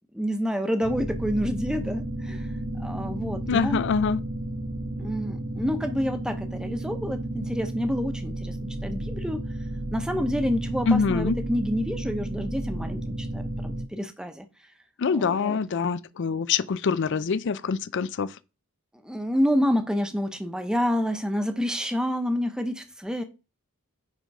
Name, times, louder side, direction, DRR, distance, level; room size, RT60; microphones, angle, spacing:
voice 1, 0.1-2.5 2.8-3.8 5.0-9.4 9.9-14.5 15.1-15.6 19.0-23.2, equal, 5° right, 0.9 m, -28 dB
sound 1, 0.8-13.9, right 1 dB, 60° right, 1.2 m, -32 dB
voice 2, 3.5-4.2 10.9-11.4 15.0-18.3, left 5 dB, 55° left, 0.4 m, -25 dB
9.4 x 3.8 x 5.4 m
head